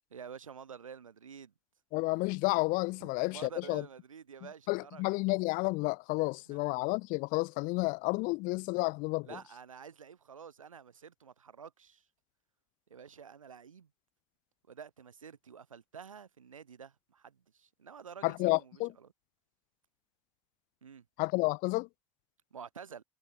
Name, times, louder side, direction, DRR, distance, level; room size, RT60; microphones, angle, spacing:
voice 1, 0.1-1.5 3.0-5.0 6.5-6.6 9.3-12.0 12.9-13.9 14.7-19.1 20.8-21.0 22.5-23.0, right 7 dB, 85° right, 3.7 m, -49 dB
voice 2, 1.9-3.8 4.7-9.4 18.2-18.9 21.2-21.9, left 25 dB, 55° left, 0.5 m, -31 dB
figure-of-eight pair, 65°, 17 cm